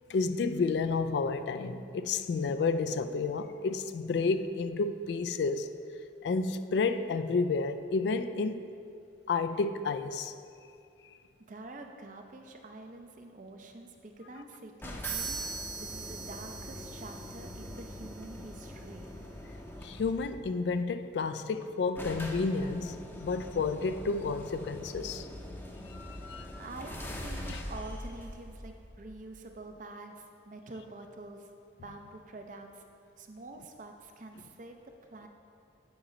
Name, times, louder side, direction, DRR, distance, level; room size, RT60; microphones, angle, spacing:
voice 1, 0.1-5.7 6.2-8.6 9.3-10.3 19.8-25.3 25.9-26.6 27.5-27.6, left 4 dB, 65° left, 10 dB, 0.3 m, -31 dB
voice 2, 11.4-19.1 26.6-31.5 31.8-32.8 33.1-35.3, right 2 dB, 45° right, 4 dB, 0.6 m, -47 dB
sound 1, 14.8-20.3 21.3-21.4 21.6-21.7 22.0-29.4, left 1 dB, 10° left, 0.6 m, -43 dB
sound 2, 15.0-18.8, right 5 dB, 65° right, 1.5 m, -41 dB
8.7 x 4.3 x 5.0 m, 2.5 s
head